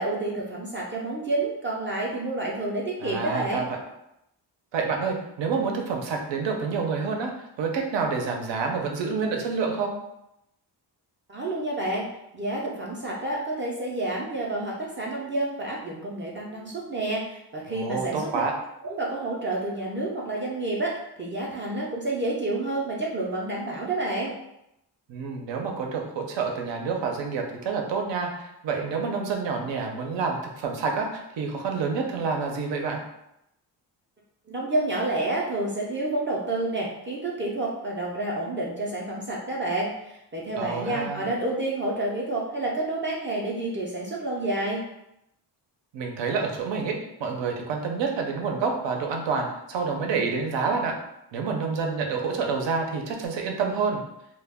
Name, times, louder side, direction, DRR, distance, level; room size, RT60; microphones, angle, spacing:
voice 1, 0.0-3.7 11.3-12.1 12.3-18.4 18.8-24.3 34.5-44.8, right 2 dB, 30° right, -4 dB, 0.4 m, -29 dB
voice 2, 3.0-3.8 4.7-7.3 7.6-9.9 17.7-18.5 25.1-33.0 40.6-41.3 45.9-50.9 51.3-54.0, right 5 dB, 80° right, 2 dB, 0.6 m, -28 dB
2.2 x 2.1 x 3.4 m, 0.83 s
cardioid pair, 105°, 43 cm